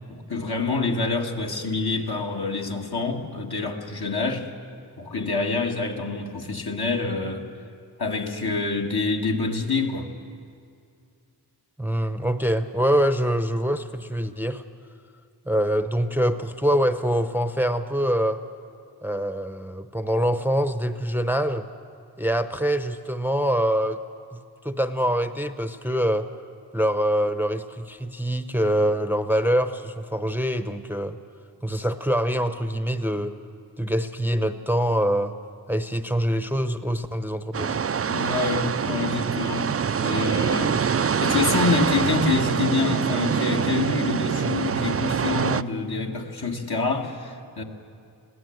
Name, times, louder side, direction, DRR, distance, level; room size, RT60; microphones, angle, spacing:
voice 1, 0.1-4.5 5.0-7.4 8.0-10.1 38.1-39.7 40.0-47.6, left 3 dB, 65° left, 1 dB, 2.0 m, -26 dB
voice 2, 11.8-14.6 15.5-18.4 19.0-21.7 22.2-24.0 24.3-26.3 26.7-31.2 31.6-33.4 33.8-35.3 35.7-37.8, equal, 5° right, 9 dB, 0.7 m, -24 dB
sound 1, 37.5-45.6, right 7 dB, 35° right, 0.4 m, -25 dB
21.5 x 16.0 x 7.9 m, 2.4 s
wide cardioid pair, 50°, 42 cm